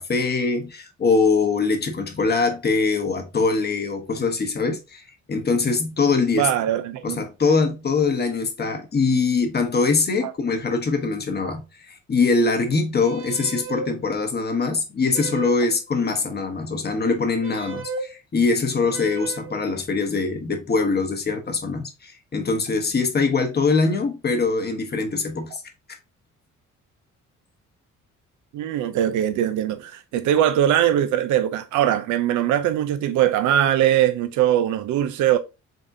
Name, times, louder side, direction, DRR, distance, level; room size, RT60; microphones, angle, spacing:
voice 1, 0.0-5.0 5.3-6.5 7.0-25.6 25.9-26.0, left 4 dB, 35° left, 0.9 m, -23 dB
voice 2, 6.4-7.2 10.2-10.3 11.4-11.5 28.5-35.4, right 11 dB, 80° right, 0.5 m, -21 dB
sound 1, 13.0-13.9 15.1-15.7 17.4-18.1 18.9-19.6, right 4 dB, 45° right, 0.9 m, -34 dB
3.8 x 3.5 x 2.6 m
cardioid pair, 90°, 30 cm